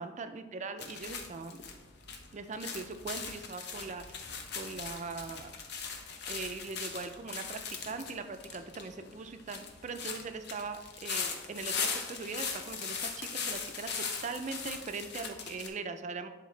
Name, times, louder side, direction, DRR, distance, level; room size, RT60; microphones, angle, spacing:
voice 1, 0.0-1.6 2.3-4.0 4.6-5.5 6.3-13.9 14.2-16.3, right 4 dB, 40° right, 8 dB, 0.4 m, -40 dB
sound 1, 0.8-15.7, left 5 dB, 60° left, 0.8 m, -39 dB
10.5 x 3.6 x 3.2 m, 1.3 s
head